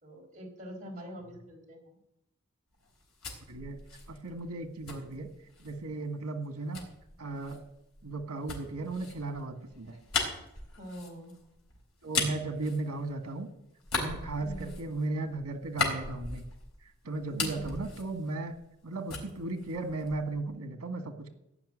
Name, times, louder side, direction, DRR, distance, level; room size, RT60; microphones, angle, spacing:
voice 1, 0.0-2.0 10.8-11.3 14.4-14.8 17.3-17.9, equal, 35° right, -1 dB, 4.3 m, -44 dB
sound 1, 2.8-5.8 6.7-13.4 13.8-16.8 17.1-18.8 19.1-20.4, left 4 dB, 80° left, 3.9 m, -37 dB
voice 2, 3.5-3.8 4.1-5.3 5.6-6.9 7.2-7.6 8.0-10.0 12.0-13.5 14.0-16.4 17.0-18.5 18.8-21.3, right 2 dB, 80° right, 7 dB, 1.7 m, -36 dB
16.5 x 5.8 x 9.8 m, 0.83 s
head